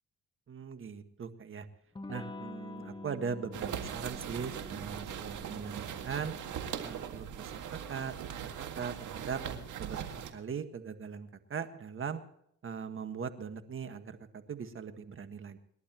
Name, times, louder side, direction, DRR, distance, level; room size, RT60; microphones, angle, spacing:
voice 1, 0.5-1.7 2.1-6.3 6.8-7.6 7.9-8.2 8.4-8.5 8.7-9.4 9.8-10.1 10.3-12.2 12.6-15.6, right 6 dB, 45° right, 9 dB, 1.6 m, -40 dB
Electric guitar / Strum, 2.0-7.3, left 2 dB, 15° left, 1.3 m, -48 dB
sound 1, 3.5-10.3, right 8 dB, 75° right, 2.0 m, -40 dB
27.5 x 11.5 x 3.0 m, 0.71 s
cardioid pair, 90°, 30 cm